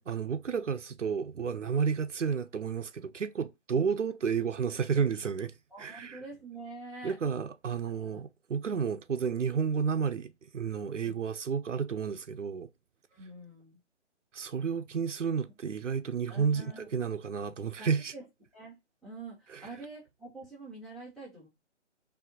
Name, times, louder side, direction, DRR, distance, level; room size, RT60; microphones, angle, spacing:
voice 1, 0.0-5.5 5.8-6.2 7.0-12.7 14.3-18.1 19.5-19.7, right 6 dB, 90° right, 0.7 m, -31 dB
voice 2, 5.7-7.2 7.8-8.2 11.0-11.1 13.1-13.8 16.3-17.1 17.8-18.2 18.5-21.5, right 2 dB, ahead, 0.6 m, -46 dB
4.8 x 2.8 x 3.8 m
figure-of-eight pair, 145°, 36 cm